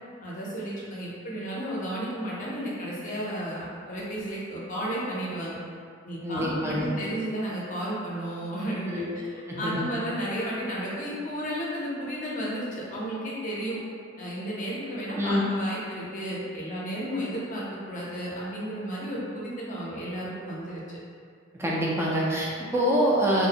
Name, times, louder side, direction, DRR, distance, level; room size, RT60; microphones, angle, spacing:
voice 1, 0.2-5.6 6.0-13.8 14.2-20.8, equal, 40° left, -6 dB, 0.6 m, -33 dB
voice 2, 6.2-6.9 8.9-9.2 9.5-9.9 15.2-15.4 21.6-23.5, equal, 10° right, -5 dB, 0.4 m, -25 dB
2.5 x 2.0 x 2.7 m, 2.2 s
head